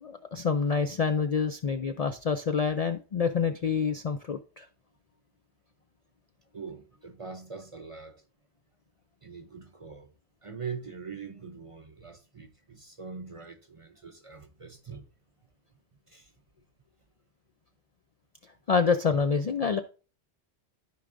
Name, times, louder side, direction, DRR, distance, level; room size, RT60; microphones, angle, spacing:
voice 1, 0.0-4.7 18.7-19.8, left 5 dB, 55° left, 0.4 m, -27 dB
voice 2, 6.5-8.1 9.2-10.1 10.4-15.0 16.1-16.3, right 5 dB, 40° right, 0.5 m, -42 dB
13.5 x 4.8 x 2.5 m
omnidirectional pair, 1.1 m